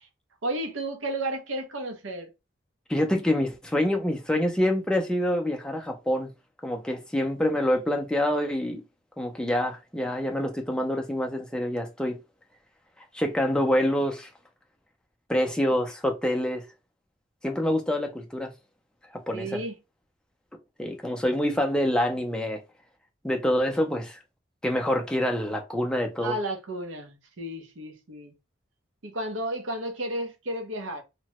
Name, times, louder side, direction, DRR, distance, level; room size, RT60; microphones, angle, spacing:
voice 1, 0.4-2.3 19.3-19.7 26.2-28.3 29.0-31.0, right 1 dB, 85° right, 0.7 m, -32 dB
voice 2, 2.9-6.3 6.6-8.8 9.2-12.2 13.1-14.3 15.3-16.6 17.4-18.5 19.1-19.6 20.8-22.6 23.2-24.2 24.6-26.3, left 1 dB, 5° left, 0.4 m, -26 dB
2.9 x 2.1 x 2.8 m
head